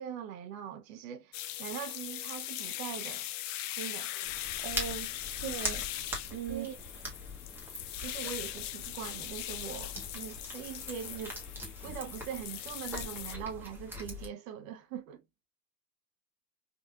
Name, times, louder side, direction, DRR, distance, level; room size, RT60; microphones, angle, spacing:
voice 1, 0.0-3.3 3.8-4.1 6.5-6.8 8.0-11.4 11.8-15.2, right 9 dB, 55° right, 1.0 m, -42 dB
sound 1, 1.3-13.4, left 14 dB, 50° left, 0.5 m, -40 dB
sound 2, 4.2-14.3, equal, 5° right, 1.1 m, -42 dB
voice 2, 4.6-5.8 6.3-6.7, right 9 dB, 30° right, 0.7 m, -39 dB
3.6 x 2.6 x 2.3 m
hypercardioid pair, 110°, 49 cm